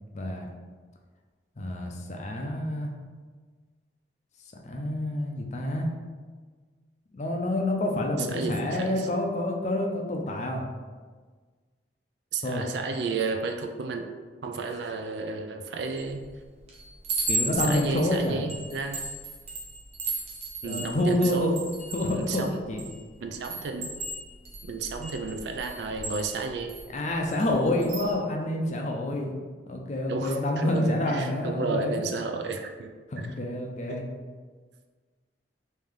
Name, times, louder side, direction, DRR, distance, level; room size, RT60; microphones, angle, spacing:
voice 1, 0.1-0.5 1.6-2.9 4.6-5.9 7.1-10.6 12.4-12.7 17.3-18.4 20.6-21.6 21.9-22.9 26.9-29.3 29.7-32.0 33.1-34.0, left 1 dB, 40° left, 1 dB, 0.5 m, -28 dB
voice 2, 8.3-9.1 12.3-14.0 14.4-16.2 17.5-19.0 20.6-21.5 22.1-22.6 23.2-23.9 24.6-26.7 30.1-32.9 33.9-34.0, right 4 dB, 70° right, 5 dB, 0.4 m, -32 dB
Chime, 16.0-16.3 16.7-23.0 23.4-26.8 27.3-27.5 27.8-28.1, right 2 dB, 35° right, 0.7 m, -35 dB
3.3 x 2.7 x 3.5 m, 1.5 s
head